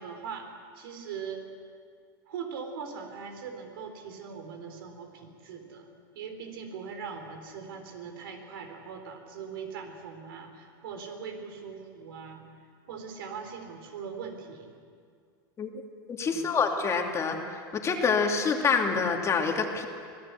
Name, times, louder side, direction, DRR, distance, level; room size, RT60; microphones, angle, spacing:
voice 1, 0.0-1.5 2.3-5.9 6.1-12.5 12.9-14.7 16.3-16.5, right 6 dB, 80° right, 5 dB, 3.8 m, -41 dB
voice 2, 16.1-19.9, left 5 dB, 25° left, 2 dB, 2.5 m, -27 dB
25.0 x 17.0 x 8.2 m, 2.2 s
supercardioid pair, 130°, 12 cm